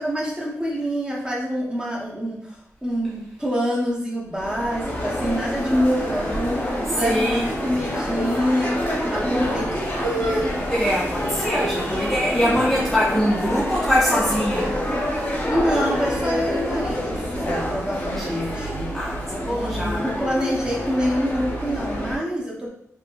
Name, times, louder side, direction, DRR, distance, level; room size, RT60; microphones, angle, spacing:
voice 1, 0.0-8.8 9.1-10.5 15.5-18.9 19.4-22.7, equal, 15° right, -3 dB, 1.0 m, -26 dB
sound 1, 4.4-22.2, equal, 30° left, 0.9 m, -27 dB
voice 2, 6.8-7.5 10.7-14.8 17.8-18.6 18.9-20.3, equal, 5° left, -5 dB, 0.5 m, -24 dB
3.2 x 2.8 x 2.4 m, 0.75 s
cardioid pair, 65°, 6 cm